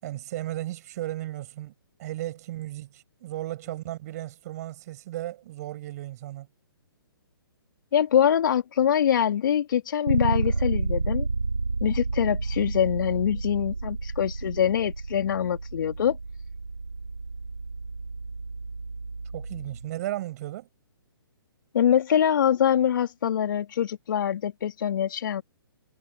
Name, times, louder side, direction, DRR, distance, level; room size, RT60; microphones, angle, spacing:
voice 1, 0.0-1.7 2.0-6.5 19.3-20.7, right 15 dB, 40° right, 7.4 m, -35 dB
voice 2, 7.9-11.3 11.8-16.2 21.7-25.4, left 9 dB, 55° left, 3.2 m, -24 dB
Bass guitar, 10.1-19.9, right 3 dB, 90° right, 1.5 m, -31 dB
figure-of-eight pair, 135°, 13 cm